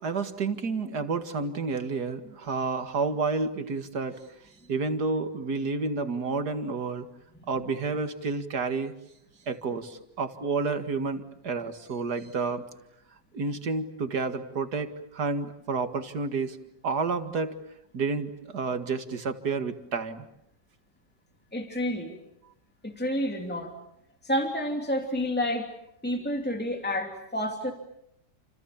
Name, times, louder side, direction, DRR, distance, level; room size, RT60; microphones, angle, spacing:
voice 1, 0.0-4.2 4.7-7.1 7.5-8.9 9.5-12.6 13.3-16.6 16.8-17.6 17.9-20.3, right 4 dB, 70° right, 8 dB, 2.5 m, -30 dB
voice 2, 21.5-22.2 22.8-23.7 24.2-25.7 26.0-27.7, left 1 dB, 5° left, 3 dB, 2.8 m, -29 dB
30.0 x 27.5 x 7.2 m, 0.79 s
omnidirectional pair, 1.8 m